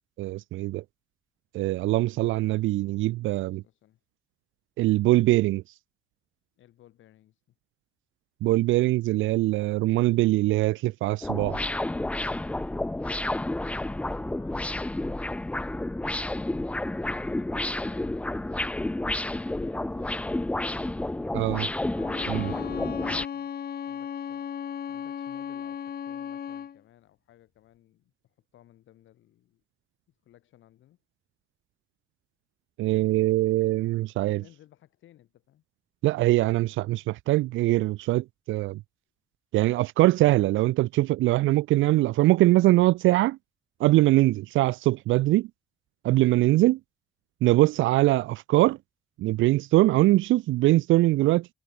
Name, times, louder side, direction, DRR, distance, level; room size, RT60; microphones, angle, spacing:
voice 1, 0.2-0.8 1.5-3.6 4.8-5.6 8.4-11.6 21.3-21.7 22.3-22.5 32.8-34.4 36.0-38.8 39.5-43.4 43.8-45.5 46.0-46.8 47.4-48.8 49.2-51.5, right 17 dB, 80° right, 0.4 m, -22 dB
voice 2, 3.4-4.0 6.6-7.5 13.5-15.7 17.0-18.5 19.0-22.2 23.3-29.6 30.1-31.0 34.3-35.6, left 13 dB, 80° left, 3.0 m, -58 dB
sound 1, 11.2-23.3, left 1 dB, 5° left, 0.4 m, -30 dB
Bowed string instrument, 21.9-26.8, left 8 dB, 50° left, 1.4 m, -36 dB
cardioid pair, 90°, 20 cm